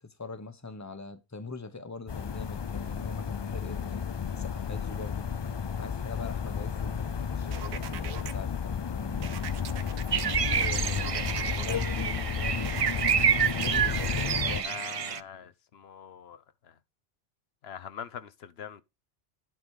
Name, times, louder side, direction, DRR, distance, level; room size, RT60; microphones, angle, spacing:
voice 1, 0.0-4.1 4.4-5.3 5.8-9.5 10.1-12.8 13.5-14.8, left 3 dB, 15° left, 1.0 m, -43 dB
sound 1, 2.1-14.6, left 7 dB, 45° left, 0.3 m, -32 dB
sound 2, 7.5-8.3 9.2-11.8 12.6-14.4, right 9 dB, 85° right, 1.0 m, -41 dB
sound 3, 10.1-15.2, right 8 dB, 45° right, 0.4 m, -28 dB
voice 2, 14.6-16.4 17.6-18.8, left 7 dB, 80° left, 1.0 m, -43 dB
11.0 x 4.0 x 4.8 m
omnidirectional pair, 1.1 m